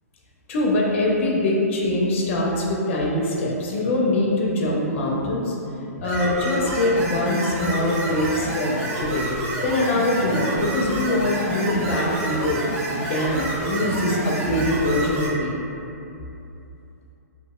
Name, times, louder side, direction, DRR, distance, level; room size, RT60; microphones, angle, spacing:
voice 1, 0.5-5.6 6.0-9.3 9.6-12.6 12.9-15.6, left 1 dB, 50° left, -2 dB, 0.4 m, -23 dB
sound 1, 6.0-15.3, right 1 dB, 50° right, 0.7 m, -28 dB
2.9 x 2.5 x 2.3 m, 2.7 s
hypercardioid pair, 125°, 9 cm